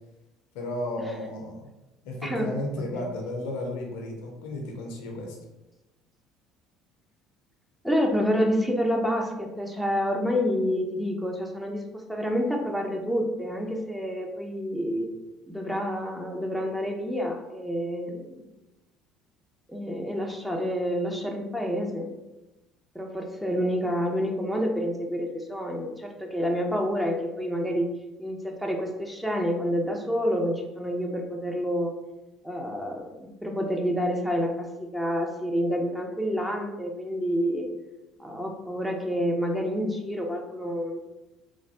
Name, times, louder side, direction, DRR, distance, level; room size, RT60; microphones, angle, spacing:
voice 1, 0.5-1.7 2.0-5.4, left 1 dB, 65° left, 2 dB, 0.6 m, -33 dB
voice 2, 7.8-15.1 15.5-18.4 19.7-22.1 22.9-27.9 28.2-31.9 32.4-37.7 38.2-41.0, equal, 5° right, 1 dB, 0.5 m, -28 dB
3.1 x 2.5 x 2.7 m, 1.0 s
figure-of-eight pair, 60°, 0 cm